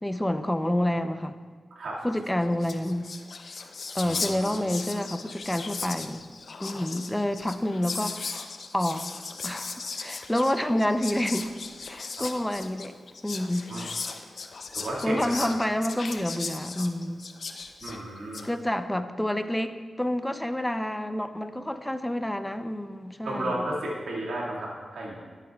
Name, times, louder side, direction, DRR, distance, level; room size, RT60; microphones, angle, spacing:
voice 1, 0.0-1.4 2.0-3.1 3.9-6.2 6.6-8.3 8.7-9.1 9.4-11.5 11.9-12.9 13.2-13.7 15.0-17.2 18.4-23.6, left 1 dB, 10° left, 10 dB, 0.5 m, -28 dB
Whispering, 2.3-2.4 2.5-18.5, left 4 dB, 65° left, 0.5 m, -37 dB
voice 2, 4.0-4.6 12.1-12.2 13.7-13.9 14.7-15.4 17.8-18.5 23.2-25.2, right 1 dB, 85° right, -5 dB, 1.9 m, -33 dB
12.0 x 9.3 x 2.3 m, 1.5 s
cardioid pair, 55°, 0 cm